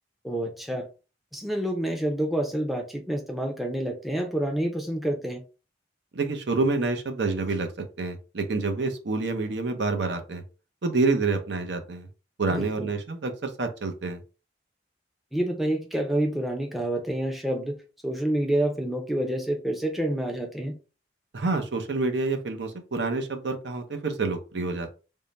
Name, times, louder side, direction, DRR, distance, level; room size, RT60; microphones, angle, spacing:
voice 1, 0.2-0.9 1.3-5.4 12.4-12.9 15.3-17.8 18.0-20.7, right 1 dB, ahead, 3 dB, 0.5 m, -28 dB
voice 2, 6.1-7.7 8.0-10.4 10.8-12.1 12.4-14.2 21.3-24.9, right 3 dB, 70° right, 6 dB, 0.7 m, -28 dB
3.6 x 2.1 x 4.0 m, 0.33 s
head